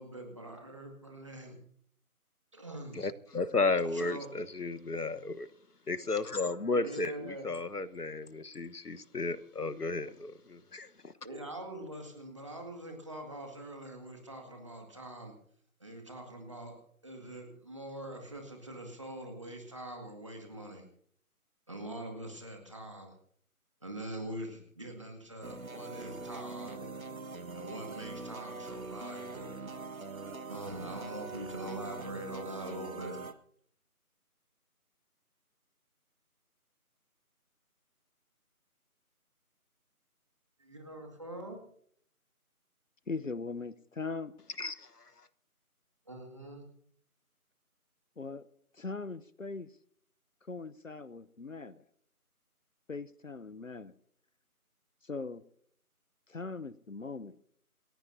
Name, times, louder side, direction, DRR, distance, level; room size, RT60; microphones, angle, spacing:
voice 1, 0.0-1.6 2.5-3.1 3.9-4.3 6.7-7.5 11.2-15.3 15.8-16.8 17.0-20.8 21.7-23.1 23.8-26.8 27.5-29.5 30.5-33.3 40.6-41.6 46.1-46.6, right 1 dB, 20° right, 3 dB, 2.0 m, -43 dB
voice 2, 2.9-5.5 5.9-11.1 44.6-44.9, left 3 dB, 90° left, 13 dB, 1.3 m, -33 dB
sound 1, 25.4-33.3, right 3 dB, 65° right, 1.5 m, -43 dB
voice 3, 43.1-44.3 48.2-48.5 48.7-49.7 50.5-51.8 52.9-53.9 55.0-55.4 56.3-57.4, left 4 dB, 60° left, 17 dB, 0.8 m, -40 dB
28.5 x 15.0 x 2.7 m, 0.64 s
figure-of-eight pair, 170°, 45 cm